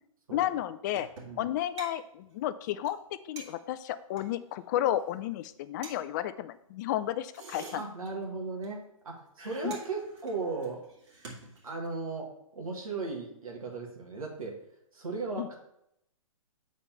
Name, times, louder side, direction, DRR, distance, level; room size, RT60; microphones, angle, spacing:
voice 1, 0.3-1.1 1.4-3.0 3.2-7.8 9.6-9.7 15.4-15.5, left 12 dB, 35° left, 13 dB, 0.4 m, -32 dB
sound 1, 0.9-1.5 1.8-1.9 2.2-2.3 2.6-2.7 2.8-3.0 3.4-4.3 4.9-5.1 5.4-5.5 5.8-6.0 7.1-8.4 8.6-8.7 8.9-9.1 9.4-12.0, right 3 dB, 55° right, 2.3 m, -47 dB
voice 2, 7.7-10.8 11.6-14.6 14.9-15.6, right 3 dB, 85° right, -1 dB, 1.7 m, -36 dB
7.1 x 4.1 x 5.5 m, 0.77 s
hypercardioid pair, 130°, 18 cm